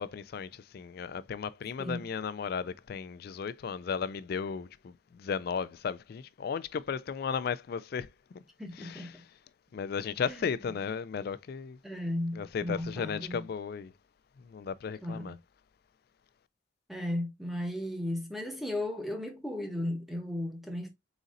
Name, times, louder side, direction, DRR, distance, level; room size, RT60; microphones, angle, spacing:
voice 1, 0.0-8.4 8.7-9.2 9.7-11.8 12.3-13.9 14.4-15.4, left 6 dB, 50° left, 0.3 m, -35 dB
voice 2, 8.6-9.2 10.2-10.4 11.8-13.4 15.0-15.4 16.9-20.9, left 1 dB, ahead, 0.8 m, -35 dB
4.0 x 4.0 x 2.5 m
head